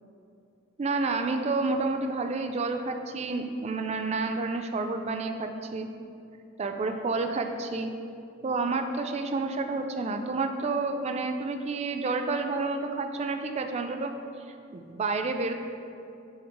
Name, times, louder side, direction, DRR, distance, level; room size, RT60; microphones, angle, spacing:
voice 1, 0.8-5.9 6.6-7.9 8.4-14.1 14.7-15.5, right 3 dB, 30° right, 6 dB, 0.3 m, -29 dB
8.7 x 3.1 x 3.6 m, 2.6 s
head